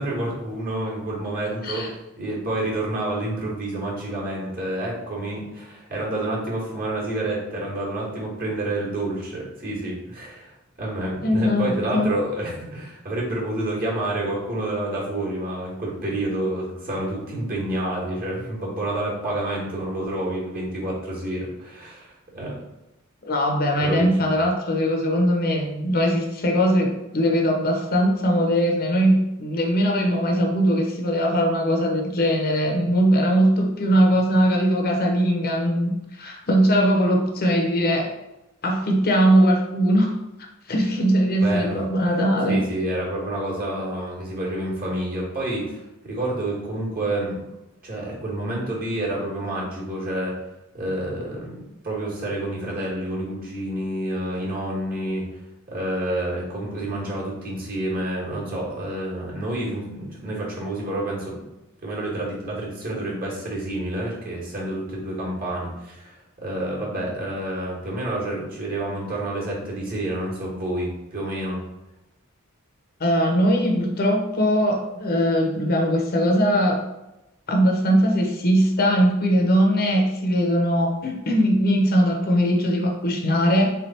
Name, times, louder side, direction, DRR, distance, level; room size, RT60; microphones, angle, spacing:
voice 1, 0.0-1.8 2.2-22.6 23.8-24.0 24.3-24.4 41.4-41.8 42.5-47.4 47.8-50.3 50.7-55.2 55.7-61.4 61.8-71.6, right 1 dB, 45° right, -3 dB, 1.5 m, -29 dB
voice 2, 11.2-12.1 23.2-38.1 38.6-40.1 40.7-42.6 73.0-76.8 77.5-83.7, equal, 45° left, 1 dB, 0.8 m, -20 dB
3.5 x 3.4 x 4.2 m, 0.94 s
head